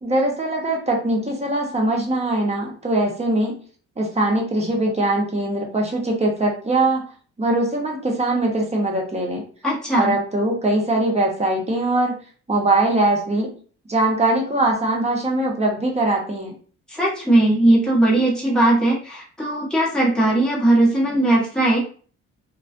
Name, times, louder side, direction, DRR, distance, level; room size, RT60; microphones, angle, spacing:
voice 1, 0.0-3.6 4.0-7.1 7.4-9.4 10.0-12.2 12.5-13.5 13.9-16.5, right 2 dB, 20° right, 0 dB, 0.8 m, -21 dB
voice 2, 9.6-10.1 16.9-21.8, right 1 dB, ahead, -5 dB, 1.0 m, -18 dB
2.4 x 2.2 x 2.4 m, 0.42 s
cardioid pair, 90°, 30 cm